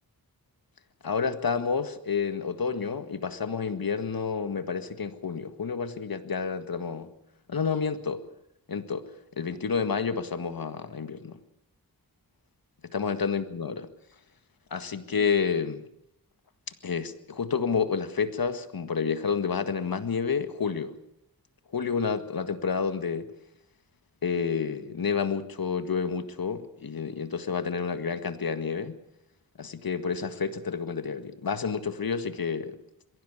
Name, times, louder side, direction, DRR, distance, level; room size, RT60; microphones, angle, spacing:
voice 1, 1.0-7.1 7.5-8.2 8.7-9.0 9.4-11.4 12.9-13.9 14.7-15.8 16.8-20.9 21.7-23.3 24.2-29.0 29.6-32.8, left 6 dB, 70° left, 1.8 m, -29 dB
22.0 x 16.5 x 8.5 m
cardioid pair, 55°, 36 cm